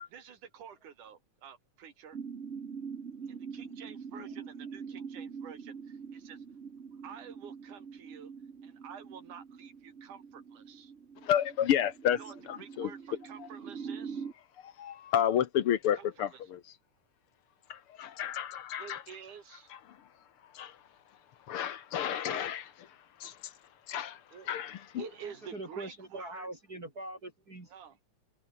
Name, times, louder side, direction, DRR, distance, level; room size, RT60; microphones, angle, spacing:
voice 1, 0.0-2.2 3.5-6.4 7.0-8.3 8.6-10.9 12.2-14.3 15.9-16.5 18.8-19.7 22.1-22.5 24.3-24.5 24.9-26.5 27.7-28.0, right 8 dB, 85° right, 4.2 m, -49 dB
sound 1, 2.1-14.3, right 6 dB, 50° right, 0.8 m, -44 dB
voice 2, 3.3-3.7 4.1-4.5 25.2-27.7, right 1 dB, 30° right, 4.7 m, -44 dB
voice 3, 11.2-12.2 12.5-12.9 14.6-16.6 17.7-19.0 20.5-20.7 21.5-22.6 23.2-23.3 23.9-24.2 24.5-25.0, left 10 dB, 60° left, 1.6 m, -30 dB
omnidirectional pair, 3.5 m